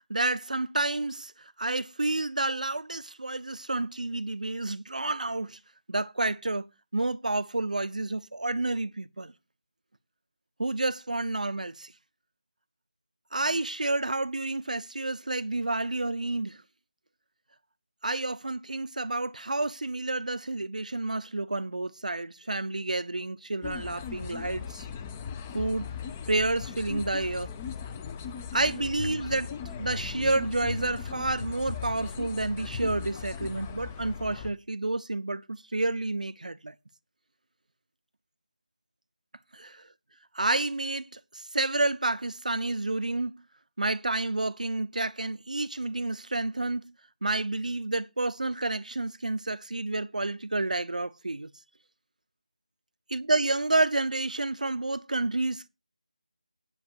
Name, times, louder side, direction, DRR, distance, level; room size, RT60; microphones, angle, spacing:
voice 1, 0.1-1.3 1.6-5.6 5.9-6.7 6.9-9.3 10.6-11.9 13.3-16.6 18.0-24.9 25.5-25.9 26.3-27.5 28.5-29.5 29.8-36.7 39.5-39.8 40.3-43.4 43.8-46.9 47.2-51.5 53.1-55.7, right 2 dB, 85° right, 0.8 m, -29 dB
sound 1, 23.6-34.5, left 6 dB, 15° left, 0.5 m, -38 dB
9.9 x 7.9 x 4.6 m
figure-of-eight pair, 170°, 4 cm